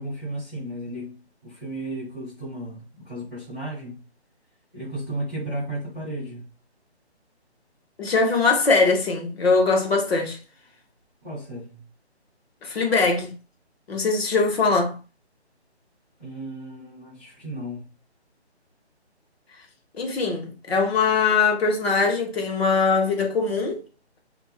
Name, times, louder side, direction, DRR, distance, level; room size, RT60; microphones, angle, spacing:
voice 1, 0.0-4.0 4.7-6.4 11.2-11.8 16.2-17.9, right 1 dB, ahead, 0.7 m, -34 dB
voice 2, 8.0-10.4 12.6-13.3 13.9-14.9 19.9-23.8, left 4 dB, 65° left, 0.9 m, -21 dB
2.6 x 2.3 x 2.2 m
figure-of-eight pair, 155°, 34 cm